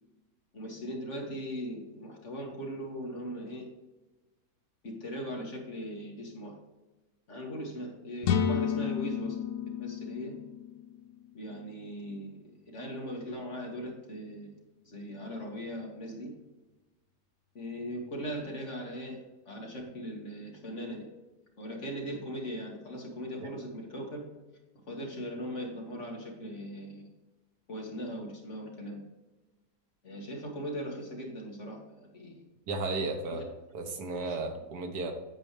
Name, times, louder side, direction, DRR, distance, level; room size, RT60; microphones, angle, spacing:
voice 1, 0.5-3.7 4.8-6.5 7.3-9.4 9.8-10.4 11.3-12.4 12.7-14.5 14.8-16.3 17.6-19.2 19.5-21.1 21.6-24.2 24.9-27.1 27.7-29.0 30.0-32.5 33.3-33.4 34.3-34.4, equal, 45° left, -1 dB, 2.0 m, -39 dB
sound 1, 8.2-12.0, left 7 dB, 65° left, 0.8 m, -32 dB
voice 2, 32.7-33.4 33.7-35.1, right 3 dB, 70° right, 5 dB, 1.6 m, -34 dB
8.7 x 7.5 x 3.3 m, 1.1 s
omnidirectional pair, 1.8 m